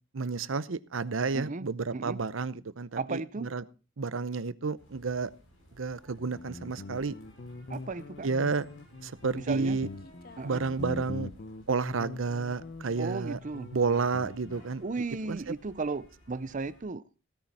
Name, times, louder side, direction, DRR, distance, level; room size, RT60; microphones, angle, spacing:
voice 1, 0.1-3.6 4.0-5.3 5.8-7.2 8.2-8.7 9.0-9.9 10.4-11.3 11.7-13.4 13.7-14.8 15.2-15.5, right 4 dB, 80° right, 0.7 m, -31 dB
voice 2, 1.3-1.6 1.9-2.2 3.0-3.5 7.7-8.3 9.4-9.8 10.4-10.6 13.0-13.7 14.8-17.0, right 3 dB, 40° right, 0.6 m, -35 dB
sound 1, 4.8-16.8, equal, 70° left, 6.3 m, -58 dB
Guitar, 6.2-14.7, left 2 dB, 50° left, 0.7 m, -43 dB
16.0 x 9.4 x 4.2 m
head